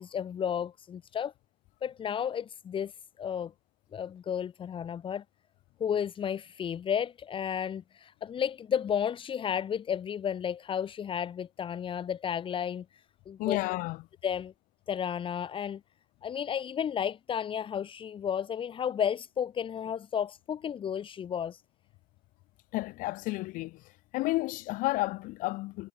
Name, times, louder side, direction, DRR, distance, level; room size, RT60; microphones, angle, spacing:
voice 1, 0.0-1.3 1.8-3.5 3.9-5.2 5.8-13.6 14.2-14.5 14.9-15.8 16.2-21.6, left 8 dB, 30° left, 2.8 m, -33 dB
voice 2, 13.4-14.0 22.7-23.8 24.1-25.9, left 20 dB, 55° left, 1.3 m, -31 dB
supercardioid pair, 105°, 16 cm